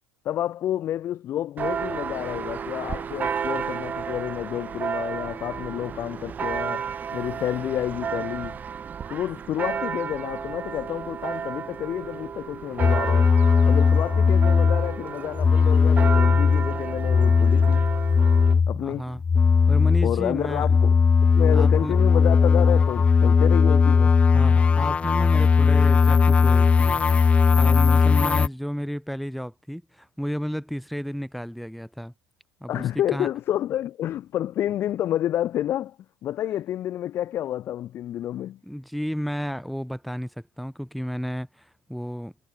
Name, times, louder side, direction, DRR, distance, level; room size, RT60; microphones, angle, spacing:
voice 1, 0.2-8.6 9.1-13.3 13.6-17.9 18.7-19.1 20.0-24.2 32.7-36.0 36.2-38.6, left 12 dB, 50° left, 7.1 m, -29 dB
Church bell, 1.6-18.5, right 7 dB, 35° right, 6.5 m, -32 dB
sound 1, 12.8-15.0 15.3-18.8 19.2-28.5, left 5 dB, 25° left, 0.9 m, -18 dB
voice 2, 18.7-19.2 19.7-20.7 21.5-21.9 24.3-32.1 32.6-33.3 38.7-42.3, equal, ahead, 4.6 m, -32 dB
supercardioid pair, 90°, 5 cm